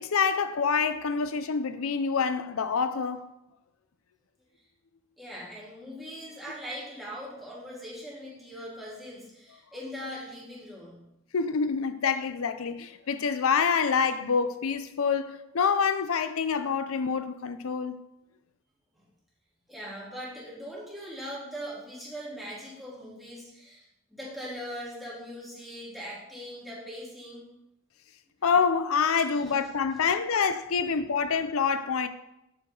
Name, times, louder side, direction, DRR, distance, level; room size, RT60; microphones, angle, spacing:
voice 1, 0.0-3.2 11.3-18.0 28.4-32.1, left 6 dB, 75° left, 0.5 m, -26 dB
voice 2, 5.2-11.0 18.9-19.0 19.7-27.5 29.4-29.5, equal, ahead, 3.2 m, -41 dB
11.5 x 7.8 x 3.9 m
head